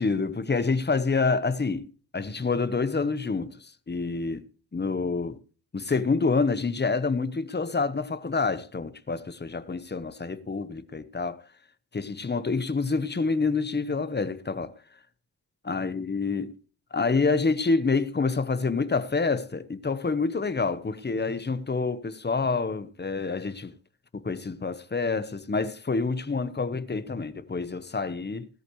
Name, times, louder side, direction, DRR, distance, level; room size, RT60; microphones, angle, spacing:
voice 1, 0.0-4.5 4.7-5.4 5.7-11.4 11.9-14.7 15.6-16.5 16.9-23.7 24.1-28.5, left 4 dB, 25° left, 1.0 m, -27 dB
17.0 x 13.0 x 3.1 m
wide cardioid pair, 100°, 38 cm